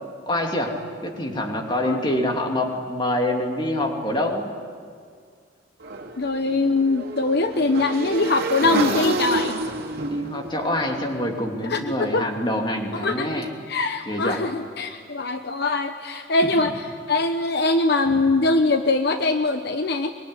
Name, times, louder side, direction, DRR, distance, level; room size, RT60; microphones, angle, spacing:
voice 1, 0.3-0.7 1.0-4.5 10.1-13.5 14.1-14.4 16.6-16.7, left 1 dB, 25° left, 2 dB, 2.9 m, -26 dB
Motorcycle / Engine, 5.8-11.9, right 2 dB, 55° right, 2.8 m, -29 dB
voice 2, 6.2-9.6 11.6-12.3 12.9-20.1, left 3 dB, 55° left, 7 dB, 1.0 m, -22 dB
23.5 x 22.5 x 9.9 m, 2.1 s
head